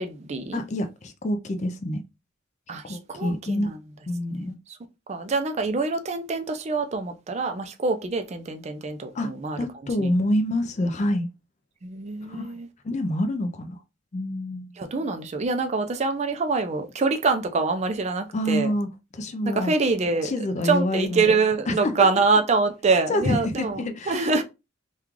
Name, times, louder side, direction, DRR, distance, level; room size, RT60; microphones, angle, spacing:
voice 1, 0.0-0.6 2.7-3.8 4.3-4.8 5.1-9.7 10.0-10.1 11.8-12.7 14.8-18.7 19.5-20.3 20.6-24.4, right 4 dB, 35° right, 0.4 m, -25 dB
voice 2, 0.5-2.0 2.9-3.7 4.1-4.6 9.1-9.3 9.6-11.3 12.2-12.6 12.8-13.8 14.1-14.7 18.3-18.9 19.1-19.7 20.2-21.2 21.7-21.9 23.1-24.3, left 1 dB, 35° left, 0.4 m, -27 dB
3.1 x 2.3 x 3.6 m
head